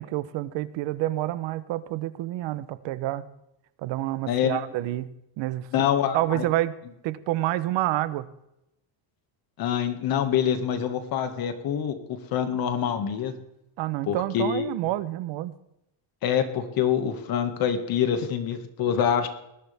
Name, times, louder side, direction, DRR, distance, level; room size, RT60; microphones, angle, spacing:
voice 1, 0.0-3.2 3.8-5.7 6.1-6.7 7.0-8.3 13.8-15.5, right 15 dB, 70° right, 14 dB, 1.1 m, -28 dB
voice 2, 4.3-4.6 5.7-6.4 9.6-13.3 14.1-14.7 16.2-19.3, left 8 dB, 50° left, 7 dB, 2.1 m, -25 dB
19.5 x 14.5 x 3.6 m, 0.84 s
cardioid pair, 165°, 45 cm